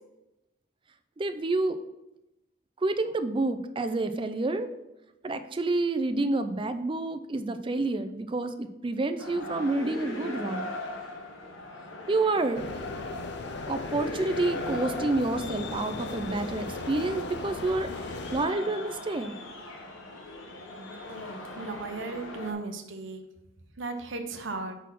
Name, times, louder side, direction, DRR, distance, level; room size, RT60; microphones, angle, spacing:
voice 1, 1.2-1.8 2.8-4.7 5.2-10.7 12.1-12.6 13.7-17.9 18.3-19.3, right 2 dB, 25° right, 10 dB, 0.4 m, -28 dB
sound 1, 9.2-22.5, left 1 dB, 80° left, 1.2 m, -39 dB
sound 2, 12.5-18.5, left 4 dB, 55° left, 0.4 m, -38 dB
voice 2, 21.5-23.2 23.8-24.7, right 3 dB, 70° right, 5 dB, 0.8 m, -35 dB
6.0 x 4.1 x 5.7 m, 0.92 s
head